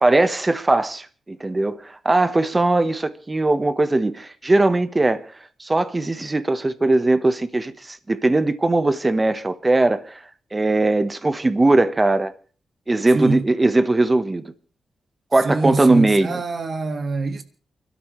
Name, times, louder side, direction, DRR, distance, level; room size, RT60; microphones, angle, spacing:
voice 1, 0.0-5.2 5.6-10.2 10.5-12.3 12.9-14.5 15.3-16.4, right 2 dB, 25° right, 1.2 m, -19 dB
voice 2, 13.1-13.5 15.4-17.4, right 3 dB, 50° right, 1.8 m, -25 dB
29.5 x 12.5 x 3.3 m
cardioid pair, 85°, 0 cm